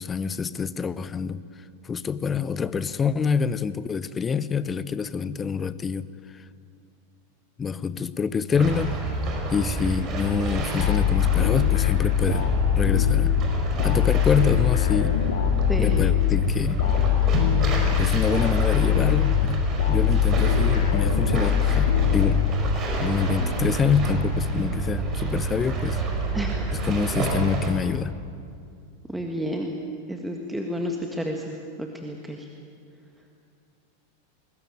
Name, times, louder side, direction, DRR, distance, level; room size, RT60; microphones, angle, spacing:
voice 1, 0.0-1.4 1.8-6.1 6.3-6.4 7.6-9.0 9.5-12.5 12.8-13.3 13.8-15.2 15.8-16.8 18.0-22.5 23.0-26.0 26.7-28.1, left 6 dB, 20° left, 17 dB, 0.8 m, -26 dB
sound 1, 8.5-27.7, right 2 dB, 30° right, 5.1 m, -28 dB
sound 2, 10.8-23.0, left 13 dB, 60° left, 2.5 m, -22 dB
voice 2, 26.3-26.7 29.1-29.8 30.1-32.5, equal, 5° right, 2 dB, 1.7 m, -31 dB
22.0 x 19.5 x 9.1 m, 2.3 s
figure-of-eight pair, 90°, 0 cm